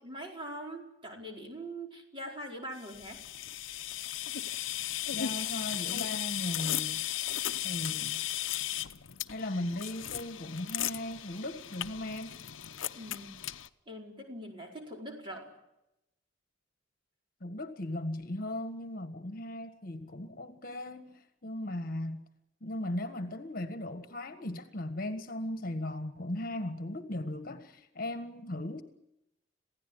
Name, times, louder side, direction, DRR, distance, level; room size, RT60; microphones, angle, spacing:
voice 1, 0.0-3.2 12.9-13.4 13.9-15.5, right 1 dB, 25° right, 4.5 m, -43 dB
sound 1, 2.8-13.7, left 12 dB, 80° left, 0.8 m, -36 dB
voice 2, 5.1-7.1 7.6-8.2 9.3-12.4 17.4-22.2 22.6-28.8, left 1 dB, 45° left, 1.6 m, -37 dB
28.0 x 16.5 x 9.8 m
head